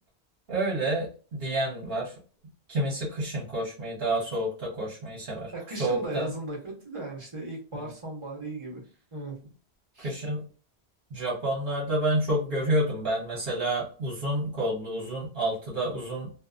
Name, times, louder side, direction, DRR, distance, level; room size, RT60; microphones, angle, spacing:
voice 1, 0.5-2.1 2.7-5.5 5.8-6.3 7.7-7.9 10.0-10.5 11.1-16.3, right 1 dB, 60° right, -5 dB, 1.1 m, -29 dB
voice 2, 5.5-8.8 9.1-9.4 9.9-10.1, right 2 dB, 30° right, -1 dB, 1.0 m, -37 dB
2.7 x 2.2 x 2.3 m, 0.39 s
omnidirectional pair, 1.1 m